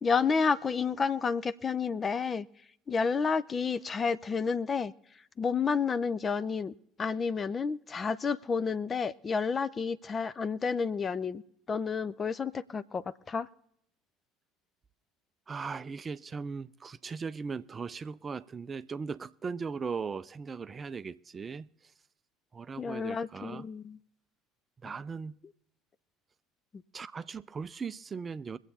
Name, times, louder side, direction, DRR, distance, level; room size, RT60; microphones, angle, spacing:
voice 1, 0.0-2.5 2.9-4.9 5.4-6.7 7.0-11.4 11.7-13.5 22.8-24.0, left 5 dB, 30° left, 0.6 m, -30 dB
voice 2, 15.5-21.9 22.5-23.6 24.8-25.4 26.9-28.6, right 5 dB, 25° right, 0.5 m, -38 dB
23.5 x 8.1 x 4.2 m
figure-of-eight pair, 60°, 0 cm